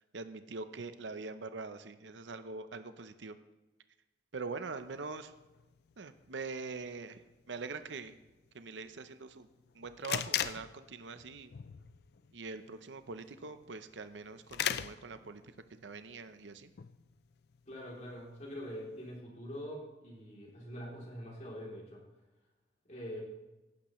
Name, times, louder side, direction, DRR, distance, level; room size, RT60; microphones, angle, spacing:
voice 1, 0.1-3.4 4.3-5.3 6.0-7.2 7.5-8.2 8.5-9.5 9.7-11.5 12.3-15.4 15.7-16.7, right 4 dB, 90° right, 10 dB, 0.7 m, -43 dB
sound 1, 4.8-19.2, left 9 dB, 60° left, 0.4 m, -42 dB
voice 2, 17.7-22.0 22.9-23.2, equal, 40° left, -3 dB, 3.1 m, -44 dB
16.5 x 11.5 x 3.1 m, 1.1 s
head